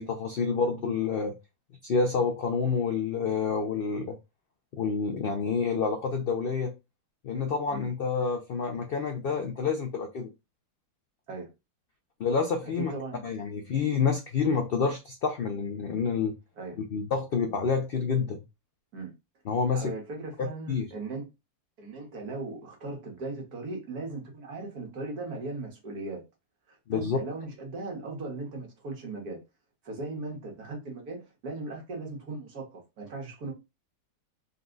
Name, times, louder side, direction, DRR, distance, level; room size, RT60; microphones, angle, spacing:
voice 1, 0.0-1.4 1.8-4.2 4.8-6.7 7.2-10.3 12.2-12.9 13.2-16.3 16.9-18.4 19.5-19.9 20.4-20.9 26.9-27.2, left 5 dB, 75° left, 0.5 m, -28 dB
voice 2, 12.6-13.2 16.6-16.8 18.9-19.1 19.7-21.3 21.8-26.2 26.7-29.4 29.8-33.5, right 3 dB, 75° right, 1.8 m, -38 dB
4.1 x 2.3 x 3.8 m
omnidirectional pair, 1.7 m